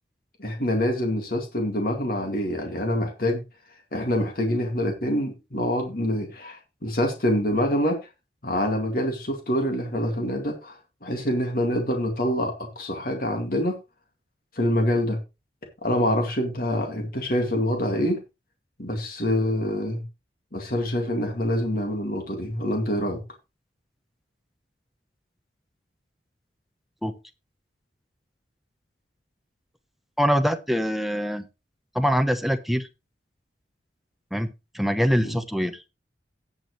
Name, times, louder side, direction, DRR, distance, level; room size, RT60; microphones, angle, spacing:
voice 1, 0.4-3.4 3.9-8.0 8.4-10.7 11.0-13.7 14.6-15.2 15.8-18.2 18.8-20.0 20.5-23.2 35.2-35.4, left 1 dB, 55° left, 3 dB, 2.1 m, -26 dB
voice 2, 30.2-31.5 31.9-32.9 34.3-34.5 34.7-35.8, equal, ahead, 8 dB, 0.8 m, -23 dB
17.5 x 6.1 x 3.1 m, 0.26 s
head